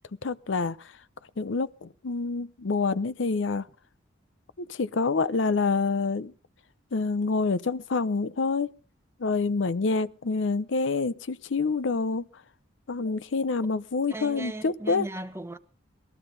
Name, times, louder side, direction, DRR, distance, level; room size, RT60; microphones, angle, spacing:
voice 1, 0.2-0.8 1.4-3.7 4.7-6.3 6.9-8.7 9.2-12.2 12.9-15.1, left 4 dB, 75° left, 0.6 m, -27 dB
voice 2, 14.1-15.6, right 2 dB, 15° right, 0.8 m, -37 dB
20.0 x 13.0 x 3.9 m
head